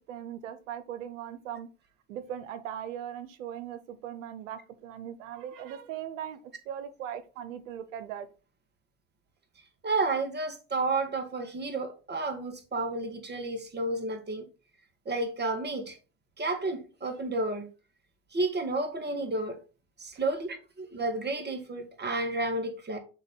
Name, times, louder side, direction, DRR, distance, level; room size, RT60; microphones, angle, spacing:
voice 1, 0.1-1.7 2.1-6.4 6.7-8.3, right 10 dB, 85° right, 0.8 m, -39 dB
voice 2, 9.8-14.5 15.1-16.0 16.4-17.7 18.3-19.6 20.0-23.0, right 2 dB, 25° right, 1.9 m, -31 dB
6.4 x 3.1 x 5.4 m
hypercardioid pair, 70°, 38 cm